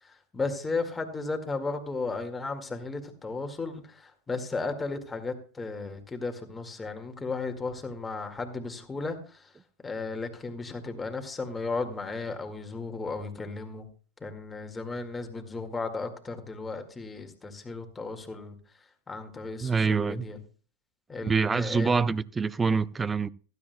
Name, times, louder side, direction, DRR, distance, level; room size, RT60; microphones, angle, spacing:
voice 1, 0.0-9.5 9.8-13.9 14.2-18.6 19.1-20.4 21.1-22.0, left 3 dB, 15° left, 1.9 m, -35 dB
voice 2, 19.6-20.3 21.2-23.3, right 5 dB, 20° right, 0.4 m, -26 dB
15.5 x 12.5 x 2.2 m
hypercardioid pair, 110°, 0 cm